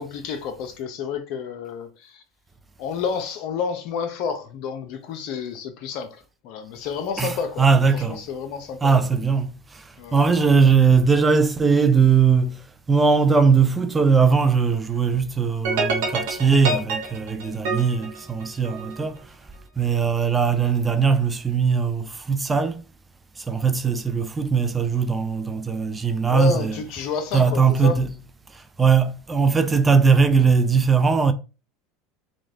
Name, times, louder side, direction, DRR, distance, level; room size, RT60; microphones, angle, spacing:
voice 1, 0.0-2.2 2.8-6.2 6.4-7.7 7.9-9.0 10.0-10.4 26.3-28.0, left 6 dB, 60° left, 0.8 m, -30 dB
voice 2, 7.2-8.2 8.8-9.5 10.1-12.6 12.9-19.2 19.8-22.8 23.5-26.8 27.3-28.1 28.8-31.3, right 5 dB, 15° right, 0.5 m, -19 dB
sound 1, 15.6-19.0, right 3 dB, 75° right, 0.9 m, -27 dB
3.1 x 2.5 x 4.0 m
hypercardioid pair, 95°, 0 cm